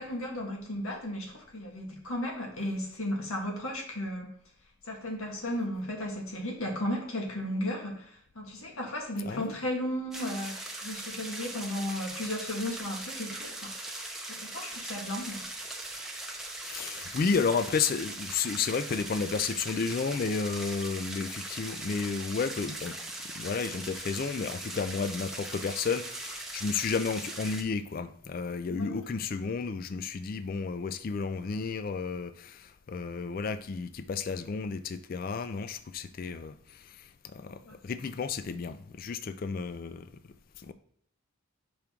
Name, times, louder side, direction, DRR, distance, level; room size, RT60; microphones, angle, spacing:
voice 1, 0.0-4.3 4.8-13.7 14.3-15.4 28.7-29.0 37.6-37.8, left 1 dB, 85° left, 1.6 m, -35 dB
sound 1, 10.1-27.6, right 2 dB, ahead, 0.6 m, -40 dB
voice 2, 16.6-23.0 23.2-40.1 40.6-40.7, left 5 dB, 45° left, 0.3 m, -32 dB
5.7 x 5.2 x 3.6 m
head